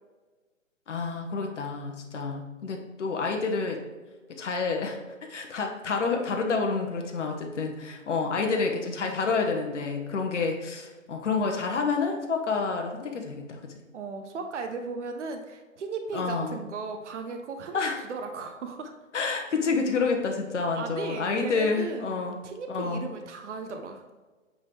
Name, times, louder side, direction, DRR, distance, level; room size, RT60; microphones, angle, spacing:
voice 1, 0.9-3.8 4.4-5.0 5.3-13.7 16.1-16.6 17.7-18.0 19.1-22.4 22.7-23.1, left 4 dB, 60° left, 3 dB, 1.1 m, -28 dB
voice 2, 13.9-18.9 20.7-22.2 22.4-24.0, right 4 dB, 60° right, 6 dB, 0.8 m, -36 dB
8.5 x 3.8 x 3.3 m, 1.3 s
hypercardioid pair, 155°, 40 cm